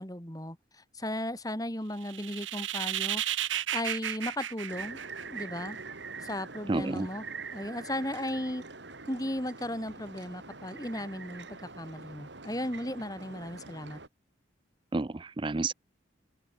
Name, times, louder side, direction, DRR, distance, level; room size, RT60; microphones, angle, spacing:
voice 1, 0.0-3.2 3.7-5.0 5.3-5.8 6.2-7.3 7.5-8.6 9.1-14.0, left 1 dB, 20° left, 4.4 m, -36 dB
sound 1, 2.0-5.6, right 11 dB, 85° right, 1.2 m, -33 dB
sound 2, 4.7-14.1, right 4 dB, 70° right, 2.9 m, -44 dB
voice 2, 6.7-7.1 14.9-15.7, right 3 dB, 25° right, 0.4 m, -30 dB
open air
head